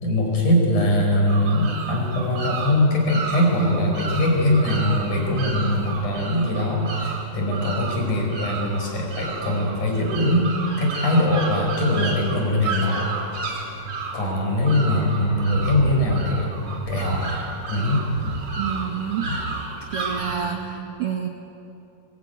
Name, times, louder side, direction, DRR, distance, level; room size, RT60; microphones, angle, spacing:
voice 1, 0.0-10.5 10.8-13.1 14.1-16.5 16.9-17.3 17.7-18.0 19.3-19.4, left 1 dB, 55° left, 0 dB, 6.3 m, -22 dB
sound 1, 1.3-20.3, right 3 dB, 35° right, 4.5 m, -32 dB
voice 2, 18.6-19.3 19.9-21.3, right 8 dB, 70° right, 3 dB, 1.4 m, -28 dB
23.0 x 20.0 x 9.3 m, 2.8 s
omnidirectional pair, 4.3 m